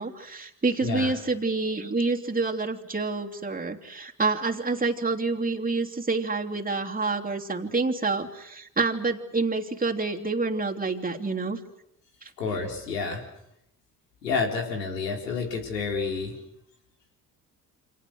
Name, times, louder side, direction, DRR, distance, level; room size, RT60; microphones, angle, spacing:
voice 1, 0.0-11.6 12.2-12.3, right 3 dB, 20° right, 2 dB, 3.1 m, -28 dB
voice 2, 0.8-1.1 12.4-13.2 14.2-16.4, left 4 dB, 90° left, 2 dB, 4.0 m, -29 dB
29.0 x 26.0 x 6.6 m, 0.79 s
hypercardioid pair, 55°, 47 cm